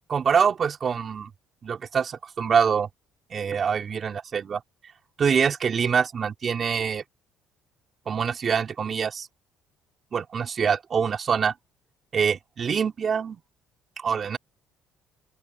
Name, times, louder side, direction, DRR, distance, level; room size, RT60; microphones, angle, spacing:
voice 1, 0.1-1.3 1.6-2.9 3.3-4.6 5.2-7.0 8.1-9.3 10.1-11.5 12.1-13.4 14.0-14.4, right 6 dB, 40° right, 4.9 m, -25 dB
open air
cardioid pair, 105°, 0 cm